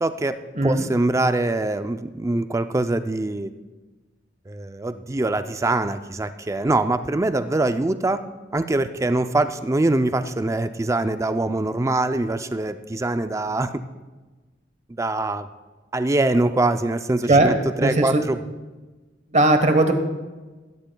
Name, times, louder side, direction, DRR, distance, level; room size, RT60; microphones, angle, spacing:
voice 1, 0.0-3.5 4.5-8.2 8.5-13.7 14.9-15.5 15.9-18.4, right 2 dB, 15° right, 10 dB, 0.4 m, -23 dB
voice 2, 17.3-18.2 19.3-19.9, right 2 dB, 40° right, 7 dB, 1.0 m, -18 dB
15.0 x 13.0 x 2.3 m, 1.2 s
head